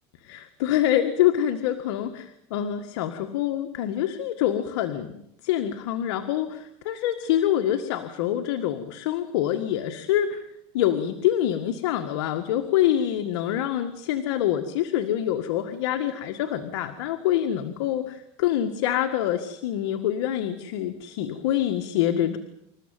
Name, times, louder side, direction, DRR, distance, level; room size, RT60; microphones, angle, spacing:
voice 1, 0.2-10.4 10.7-22.4, left 11 dB, 80° left, 8 dB, 1.8 m, -26 dB
27.5 x 14.5 x 9.2 m, 0.77 s
supercardioid pair, 125°, 14 cm